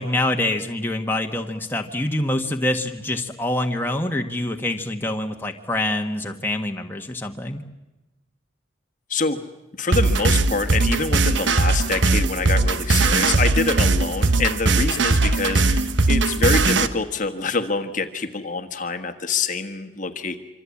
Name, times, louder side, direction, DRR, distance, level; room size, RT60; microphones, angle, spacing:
voice 1, 0.0-7.6, left 1 dB, 10° left, 3 dB, 1.5 m, -25 dB
voice 2, 9.8-20.4, left 4 dB, 40° left, 7 dB, 1.4 m, -26 dB
sound 1, 9.9-16.9, right 3 dB, 70° right, 1.2 m, -19 dB
26.0 x 25.5 x 8.6 m, 1.0 s
head